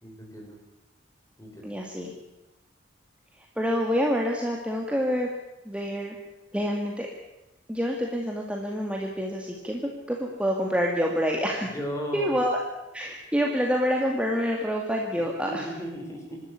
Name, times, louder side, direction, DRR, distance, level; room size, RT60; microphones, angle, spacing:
voice 1, 0.0-0.6 1.4-1.7 11.7-12.3 15.4-16.4, equal, 15° left, 0 dB, 5.7 m, -36 dB
voice 2, 1.6-2.1 3.6-5.3 5.7-6.2 6.5-7.1 7.7-9.8 10.1-11.7 12.1-12.6 12.9-15.7, equal, 5° right, 0 dB, 2.1 m, -27 dB
25.5 x 12.5 x 9.9 m, 0.97 s
head